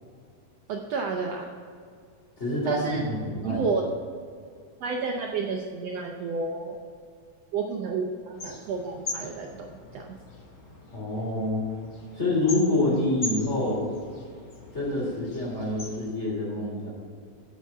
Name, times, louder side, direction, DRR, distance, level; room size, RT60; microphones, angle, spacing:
voice 1, 0.7-1.5 2.6-3.0 3.4-3.9 4.8-6.8 7.5-10.2, right 4 dB, 70° right, 2 dB, 1.6 m, -31 dB
voice 2, 2.4-3.6 10.9-11.6 12.2-13.8 14.7-16.9, left 2 dB, 20° left, -4 dB, 3.2 m, -27 dB
sound 1, 8.3-16.1, left 2 dB, 35° left, 1.5 m, -40 dB
9.3 x 7.5 x 7.3 m, 2.2 s
omnidirectional pair, 3.6 m